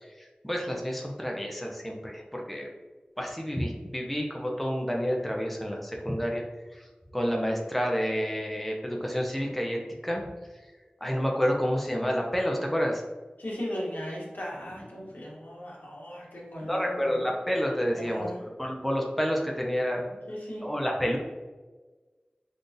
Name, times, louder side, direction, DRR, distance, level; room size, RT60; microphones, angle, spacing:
voice 1, 0.4-2.7 3.2-6.4 6.7-6.9 7.1-10.2 11.0-13.0 14.9-15.1 16.6-18.3 18.6-20.0 20.6-21.2, equal, 5° left, -1 dB, 0.5 m, -29 dB
voice 2, 13.4-17.1 17.9-18.4 20.3-20.7, equal, 75° left, -5 dB, 1.0 m, -37 dB
3.8 x 2.4 x 2.6 m, 1.3 s
wide cardioid pair, 40°, 3 cm